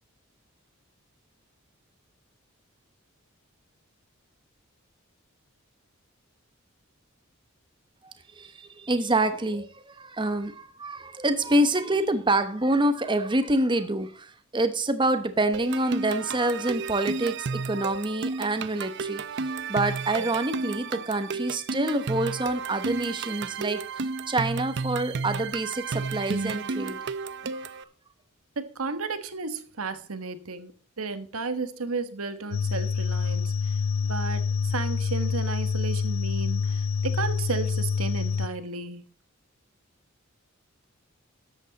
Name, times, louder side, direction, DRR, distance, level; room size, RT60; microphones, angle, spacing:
voice 1, 8.0-27.0 27.4-27.8, right 1 dB, 20° right, 1.0 m, -27 dB
sound 1, 15.5-27.8, right 4 dB, 55° right, 0.6 m, -32 dB
voice 2, 28.6-30.7 31.0-33.5 34.0-39.0, right 4 dB, 90° right, 1.4 m, -33 dB
sound 2, 32.5-38.5, left 5 dB, 75° left, 0.6 m, -27 dB
13.0 x 8.2 x 4.1 m
head